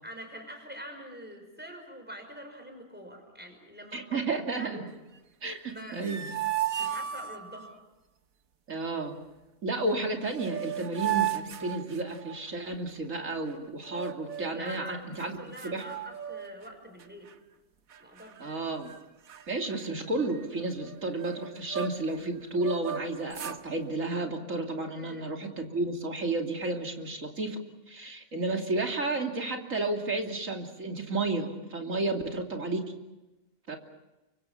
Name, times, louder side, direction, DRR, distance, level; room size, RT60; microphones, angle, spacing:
voice 1, 0.0-4.3 4.5-4.9 5.7-6.5 6.8-7.8 14.5-17.3 18.0-18.6 24.9-25.3, equal, 5° right, 5 dB, 5.6 m, -45 dB
voice 2, 3.9-4.8 5.4-6.3 8.7-9.2 9.6-15.3 15.6-15.8 18.4-18.9 19.5-27.6 27.9-32.8 33.7-33.8, right 2 dB, 70° right, 2 dB, 3.3 m, -32 dB
sound 1, 5.7-7.7 9.9-10.0 10.3-12.5 13.8-14.7 15.2-15.3 15.6-16.7 17.0-17.3 17.9-18.5 18.8-19.0 19.3-22.2 22.6-23.6, right 11 dB, 85° right, 1.6 m, -35 dB
28.5 x 25.0 x 5.7 m, 1.0 s
omnidirectional pair, 1.4 m